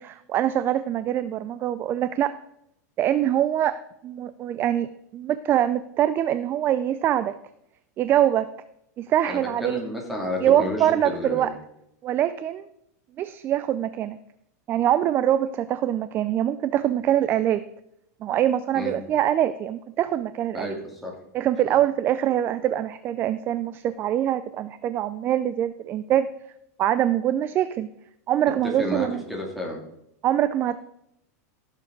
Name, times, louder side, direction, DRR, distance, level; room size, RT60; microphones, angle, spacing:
voice 1, 0.0-2.3 3.0-3.8 4.0-4.9 5.1-7.3 8.0-8.5 9.0-9.8 10.4-11.5 12.0-12.7 13.2-14.2 14.7-17.6 18.2-20.8 21.3-26.3 26.8-27.9 28.3-29.2 30.2-30.8, right 11 dB, 25° right, 13 dB, 0.3 m, -24 dB
voice 2, 9.3-11.5 18.7-19.0 20.5-21.1 28.8-29.8, left 1 dB, ahead, -1 dB, 2.5 m, -31 dB
16.0 x 7.2 x 3.8 m, 0.79 s
supercardioid pair, 155°, 9 cm